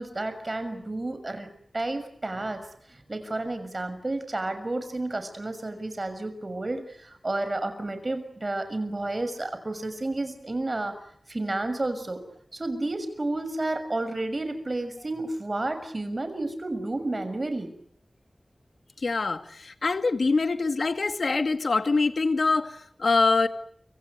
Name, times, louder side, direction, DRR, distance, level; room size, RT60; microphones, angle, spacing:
voice 1, 0.0-1.5 1.7-2.6 3.1-10.9 11.3-12.2 12.5-17.7, right 2 dB, 40° right, 10 dB, 6.4 m, -31 dB
voice 2, 19.0-23.5, left 3 dB, 80° left, 9 dB, 2.0 m, -24 dB
29.5 x 26.5 x 6.7 m, 0.64 s
wide cardioid pair, 70°, 0 cm